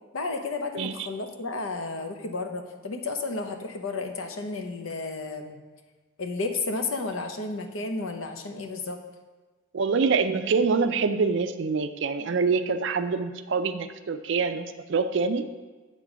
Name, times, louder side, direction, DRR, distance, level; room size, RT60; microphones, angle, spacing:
voice 1, 0.1-5.6 6.2-9.0, left 3 dB, 80° left, 5 dB, 0.8 m, -32 dB
voice 2, 0.8-1.1 9.7-15.5, right 4 dB, 60° right, 10 dB, 0.4 m, -25 dB
8.2 x 3.7 x 6.1 m, 1.3 s
head